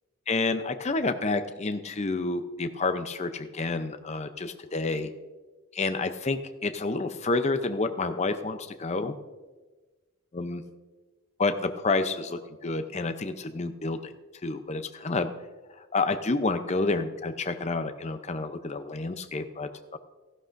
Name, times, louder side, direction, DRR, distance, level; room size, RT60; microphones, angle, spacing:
voice 1, 0.3-5.1 5.7-9.2 10.3-10.6 11.4-14.1 14.4-15.3 15.8-20.0, left 3 dB, 30° left, 9 dB, 0.6 m, -29 dB
15.5 x 11.5 x 2.6 m, 1.3 s
head